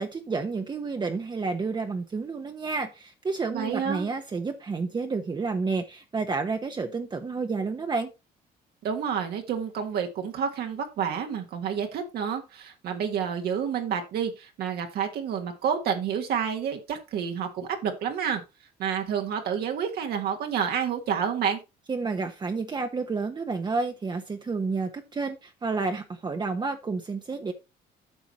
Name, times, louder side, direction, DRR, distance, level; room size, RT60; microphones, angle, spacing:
voice 1, 0.0-8.1 21.9-27.5, right 4 dB, 25° right, 1.0 m, -30 dB
voice 2, 3.5-4.1 8.8-18.4 18.8-21.6, right 7 dB, 70° right, 1.7 m, -29 dB
9.1 x 6.1 x 4.1 m
cardioid pair, 110°, 17 cm